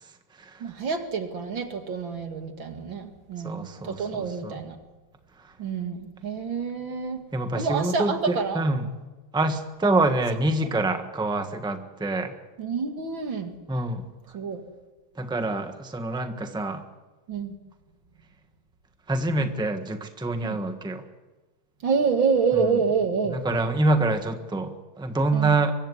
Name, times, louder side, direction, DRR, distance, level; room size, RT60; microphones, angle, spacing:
voice 1, 0.6-4.8 5.6-7.2 7.5-8.6 9.8-9.9 10.6-10.7 12.6-13.5 14.3-14.6 17.3-17.5 20.4-20.6 21.8-23.4 25.3-25.5, right 5 dB, 85° right, 5 dB, 2.9 m, -27 dB
voice 2, 3.4-4.5 7.3-9.0 9.3-12.3 13.7-14.0 15.2-16.8 19.1-21.0 23.3-25.7, right 2 dB, 5° right, 7 dB, 1.2 m, -26 dB
23.5 x 15.5 x 9.8 m, 1.2 s
omnidirectional pair, 2.1 m